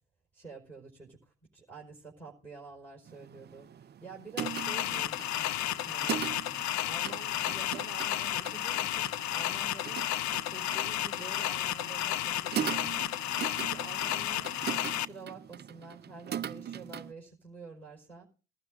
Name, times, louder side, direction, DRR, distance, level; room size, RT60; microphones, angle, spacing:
voice 1, 0.3-6.3 6.8-10.1 10.4-13.0 13.3-14.5 14.9-18.3, right 4 dB, 5° left, -3 dB, 4.7 m, -48 dB
sound 1, 3.1-17.1, right 9 dB, 25° right, 0.5 m, -41 dB
sound 2, 4.4-15.1, left 13 dB, 40° left, 0.5 m, -32 dB
20.5 x 12.0 x 2.6 m, 0.35 s
supercardioid pair, 85°, 43 cm